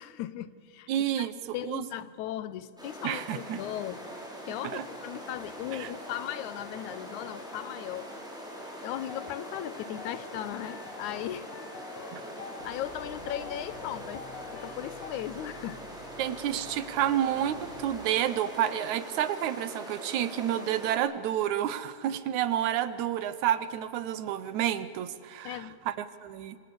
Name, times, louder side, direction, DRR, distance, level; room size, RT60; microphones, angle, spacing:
voice 1, 0.0-0.9 1.2-1.3 1.5-4.1 4.5-8.1 8.8-11.5 12.6-14.2 14.6-15.8 25.4-25.8, left 12 dB, 75° left, 15 dB, 2.1 m, -37 dB
voice 2, 0.9-1.9 3.0-3.6 4.7-4.9 5.7-5.9 12.1-12.2 16.2-26.6, right 11 dB, 75° right, 14 dB, 2.2 m, -30 dB
sound 1, 2.8-21.0, equal, ahead, 4.9 m, -43 dB
sound 2, 8.9-15.1, left 7 dB, 60° left, 2.2 m, -46 dB
sound 3, 12.6-17.9, equal, 45° left, 2.4 m, -52 dB
27.0 x 25.5 x 7.0 m, 2.6 s
omnidirectional pair, 3.5 m